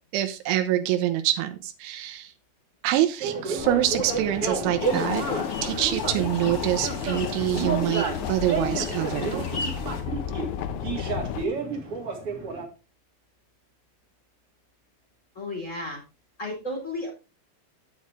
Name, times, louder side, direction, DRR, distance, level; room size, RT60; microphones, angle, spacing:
voice 1, 0.1-2.3 2.8-5.2 5.6-9.7, right 13 dB, 85° right, 8 dB, 3.2 m, -26 dB
sound 1, 3.2-12.7, right 4 dB, 50° right, 1.9 m, -31 dB
sound 2, 3.6-11.5, left 10 dB, 85° left, 3.1 m, -33 dB
sound 3, 4.8-10.0, left 3 dB, 45° left, 1.5 m, -38 dB
voice 2, 15.3-16.0 16.4-17.1, left 1 dB, 25° left, 0 dB, 1.6 m, -33 dB
8.5 x 8.4 x 3.5 m, 0.30 s
omnidirectional pair, 5.3 m